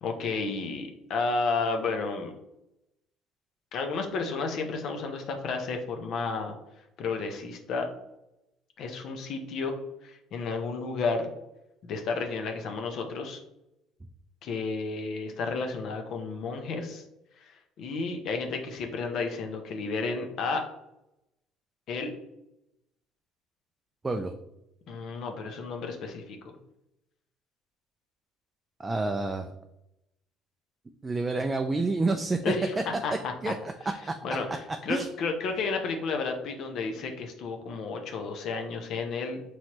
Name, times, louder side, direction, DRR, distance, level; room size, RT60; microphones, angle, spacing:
voice 1, 0.0-2.3 3.7-6.6 7.0-7.9 8.8-9.8 10.0-11.3 11.8-13.4 14.4-17.0 17.4-17.5 17.8-20.7 21.9-22.1 24.9-26.5 32.4-32.8 33.0-33.5 34.2-39.4, left 4 dB, 60° left, 4 dB, 0.6 m, -32 dB
voice 2, 28.8-29.5 31.0-32.4 33.4-34.2 34.5-34.6 34.9-35.1, right 3 dB, 20° right, 5 dB, 0.3 m, -29 dB
4.2 x 3.1 x 2.9 m, 0.87 s
supercardioid pair, 90°, 0 cm